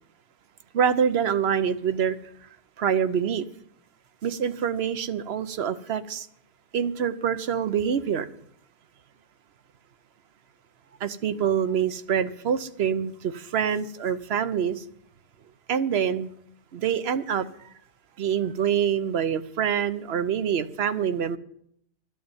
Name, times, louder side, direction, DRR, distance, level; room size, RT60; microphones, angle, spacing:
voice 1, 0.7-2.2 2.8-3.5 4.2-6.3 6.7-8.3 11.0-14.8 15.7-16.3 16.7-17.7 18.2-21.4, right 8 dB, 70° right, 12 dB, 1.0 m, -26 dB
13.0 x 6.9 x 8.9 m, 0.70 s
omnidirectional pair, 1.1 m